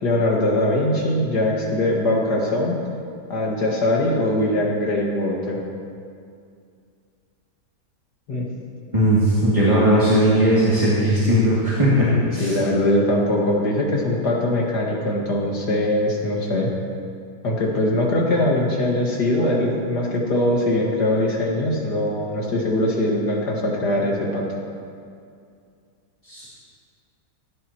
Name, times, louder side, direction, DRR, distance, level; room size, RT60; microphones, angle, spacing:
voice 1, 0.0-2.7 3.3-5.6 8.3-8.4 12.1-16.7 17.4-24.5, left 1 dB, 75° left, -2 dB, 2.5 m, -21 dB
voice 2, 8.9-12.1 12.3-12.6 26.2-26.5, equal, 20° right, -8 dB, 2.4 m, -18 dB
17.5 x 15.5 x 3.0 m, 2.3 s
omnidirectional pair, 1.8 m